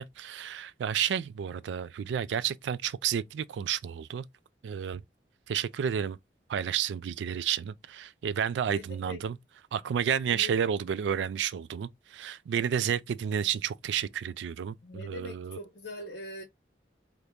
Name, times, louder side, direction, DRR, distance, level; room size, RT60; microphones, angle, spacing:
voice 1, 0.0-4.3 4.6-5.0 5.5-6.2 6.5-9.4 9.7-15.6, right 8 dB, 90° right, 0.3 m, -31 dB
voice 2, 8.7-9.2 10.3-10.6 14.8-16.4, left 1 dB, 65° left, 0.8 m, -42 dB
2.8 x 2.6 x 3.3 m
head